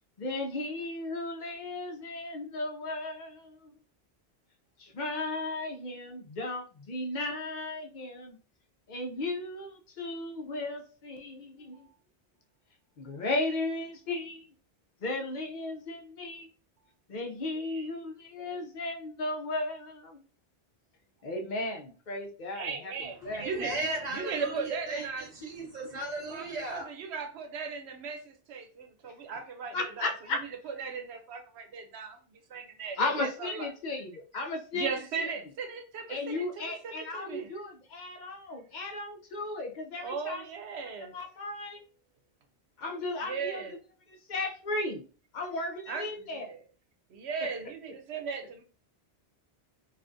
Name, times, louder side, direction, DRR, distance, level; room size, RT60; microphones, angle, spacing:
voice 1, 0.2-3.7 4.8-8.4 8.9-11.9 13.0-14.5 15.0-16.5 17.1-20.2 21.2-22.9 23.2-23.4 29.7-30.4 33.0-34.9 35.2-35.3 36.1-40.4 41.1-41.8 42.8-43.6 44.1-45.0 45.3-46.5, left 2 dB, 50° left, 0.7 m, -35 dB
voice 2, 17.5-17.9 22.5-25.3 26.3-33.7 34.7-37.5 39.9-41.1 43.2-43.7 45.9-46.6 47.1-48.6, right 5 dB, 75° right, 0.9 m, -38 dB
voice 3, 23.3-26.9, right 2 dB, 40° right, 1.0 m, -36 dB
3.4 x 2.4 x 2.6 m
omnidirectional pair, 1.1 m